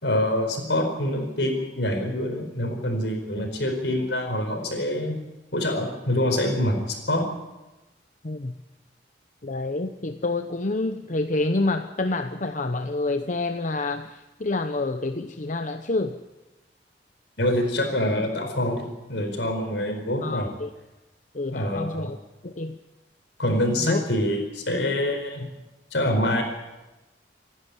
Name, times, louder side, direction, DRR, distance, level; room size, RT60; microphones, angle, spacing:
voice 1, 0.0-5.2 5.5-7.3 17.4-20.5 21.5-22.1 23.4-25.5 25.9-26.4, left 1 dB, 75° left, 4 dB, 4.7 m, -25 dB
voice 2, 9.4-16.2 20.2-20.7 21.3-22.2 22.4-22.8 23.8-24.0, left 2 dB, 45° left, 7 dB, 0.9 m, -28 dB
27.0 x 11.0 x 9.8 m, 1.1 s
head